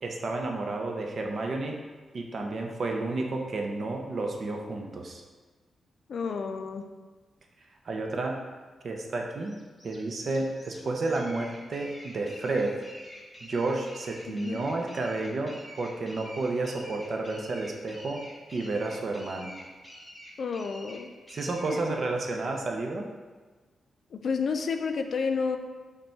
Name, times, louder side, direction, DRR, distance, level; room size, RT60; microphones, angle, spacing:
voice 1, 0.0-1.8 2.1-5.2 7.8-8.4 8.8-9.6 9.8-12.8 13.4-18.2 18.5-19.5 21.3-23.1, right 2 dB, 55° right, 1 dB, 0.5 m, -31 dB
voice 2, 6.1-6.9 14.3-14.6 20.4-21.1 21.8-21.9 24.1-25.6, left 5 dB, 65° left, 6 dB, 0.4 m, -30 dB
sound 1, 9.5-21.9, equal, 10° left, 1.0 m, -47 dB
5.2 x 2.3 x 4.3 m, 1.3 s
cardioid pair, 90°, 0 cm